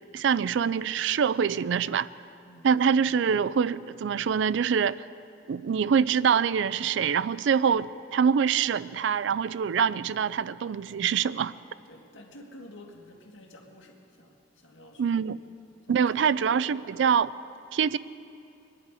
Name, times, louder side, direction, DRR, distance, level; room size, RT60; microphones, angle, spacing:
voice 1, 0.1-2.1 2.6-5.0 5.5-11.5 15.0-15.4 15.9-17.3 17.7-18.0, right 7 dB, 70° right, 18 dB, 0.4 m, -25 dB
voice 2, 2.4-2.9 11.9-15.3 15.9-16.7, left 1 dB, 80° left, 1 dB, 1.9 m, -50 dB
24.0 x 10.5 x 4.8 m, 2.7 s
head